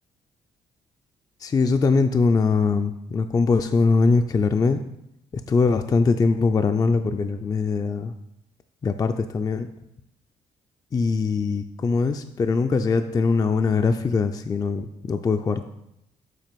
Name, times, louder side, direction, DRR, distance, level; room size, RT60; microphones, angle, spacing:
voice 1, 1.4-4.8 5.3-8.1 8.8-9.7 10.9-15.6, left 4 dB, 25° left, 8 dB, 0.3 m, -22 dB
7.4 x 2.5 x 5.1 m, 0.81 s
cardioid pair, 80°, 14 cm